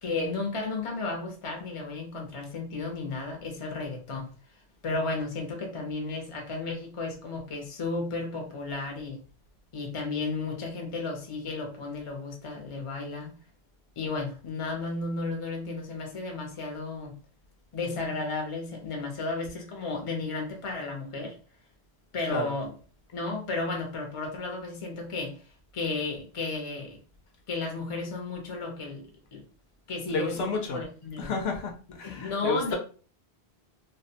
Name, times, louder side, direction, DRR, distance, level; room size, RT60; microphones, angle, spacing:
voice 1, 0.0-4.3 4.8-9.2 9.7-13.3 14.0-17.2 17.7-21.4 22.1-22.7 23.1-27.0 27.5-29.0 29.3-29.4 29.9-30.4 30.7-31.3 32.0-32.8, left 3 dB, 35° left, 2 dB, 0.6 m, -33 dB
voice 2, 30.1-30.8 31.2-32.8, left 3 dB, 75° left, 3 dB, 0.8 m, -31 dB
2.4 x 2.1 x 2.7 m, 0.38 s
omnidirectional pair, 1.1 m